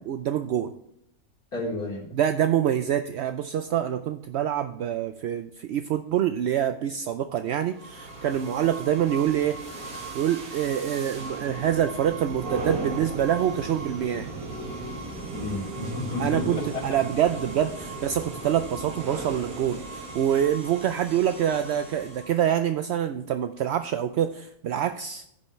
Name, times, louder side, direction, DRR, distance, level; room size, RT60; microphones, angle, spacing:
voice 1, 0.1-0.7 2.1-9.6 10.1-14.3 16.2-25.2, right 10 dB, 65° right, 9 dB, 0.6 m, -26 dB
voice 2, 1.5-2.1 15.3-17.0, left 2 dB, 80° left, -5 dB, 4.1 m, -31 dB
sound 1, 7.7-22.5, right 3 dB, 90° right, 2.2 m, -37 dB
16.0 x 5.6 x 3.1 m, 0.76 s
omnidirectional pair, 1.6 m